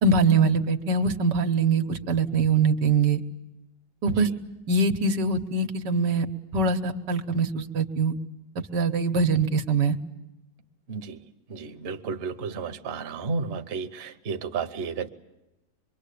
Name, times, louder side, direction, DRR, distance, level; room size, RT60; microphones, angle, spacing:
voice 1, 0.0-3.2 4.0-4.3 4.7-6.3 6.5-8.1 8.7-10.0, right 4 dB, 75° right, 6 dB, 1.8 m, -23 dB
voice 2, 10.9-15.1, right 5 dB, 40° right, 7 dB, 1.1 m, -33 dB
25.5 x 23.0 x 8.4 m, 0.96 s
omnidirectional pair, 1.9 m